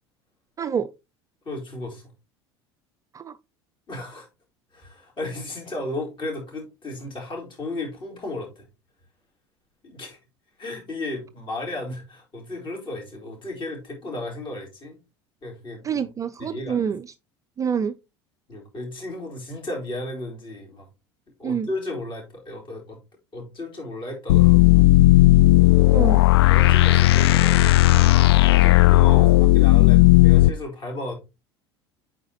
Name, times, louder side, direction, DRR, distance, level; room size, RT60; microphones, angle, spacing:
voice 1, 0.6-0.9 3.1-3.4 15.8-17.1 17.6-18.0 21.4-21.7 25.9-26.2, right 7 dB, 25° right, 0.4 m, -26 dB
voice 2, 1.4-2.1 3.9-4.3 4.7-8.7 9.8-10.2 10.6-15.0 15.4-16.0 16.4-16.9 18.5-20.9 21.4-23.0 23.3-25.0 26.5-27.6 28.5-31.1, left 2 dB, 35° left, 3.8 m, -34 dB
sound 1, 24.3-30.5, left 16 dB, 65° left, 0.4 m, -14 dB
8.5 x 4.7 x 2.9 m
figure-of-eight pair, 70°, 14 cm